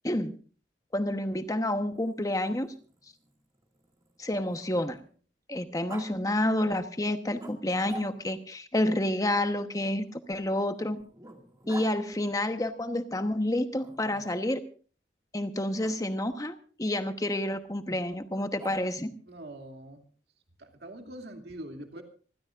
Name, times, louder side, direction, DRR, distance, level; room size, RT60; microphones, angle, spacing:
voice 1, 0.0-0.4 0.9-2.7 4.2-5.0 5.5-11.0 11.7-14.6 15.3-19.1, left 1 dB, 20° left, 8 dB, 1.1 m, -29 dB
Growling, 1.8-5.2 5.9-6.1 7.4-8.5 9.8-11.9 13.8-14.5 15.8-16.0 18.3-19.1, right 1 dB, 20° right, 2.2 m, -48 dB
voice 2, 19.3-20.1 20.6-22.0, right 1 dB, 65° right, 3 dB, 2.6 m, -43 dB
26.0 x 15.0 x 2.5 m, 0.40 s
head